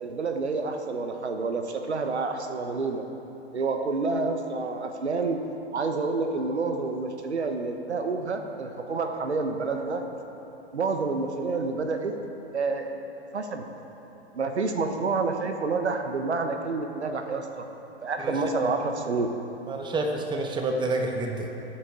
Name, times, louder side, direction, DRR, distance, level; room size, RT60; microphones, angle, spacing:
voice 1, 0.0-3.1 3.5-5.4 5.7-10.0 10.7-12.1 12.5-12.9 13.3-13.6 14.3-17.7 18.0-19.3, right 3 dB, 80° right, 6 dB, 1.2 m, -28 dB
voice 2, 19.7-21.5, right 2 dB, 15° right, 3 dB, 1.2 m, -28 dB
18.5 x 9.3 x 3.8 m, 3.0 s
figure-of-eight pair, 110°, 33 cm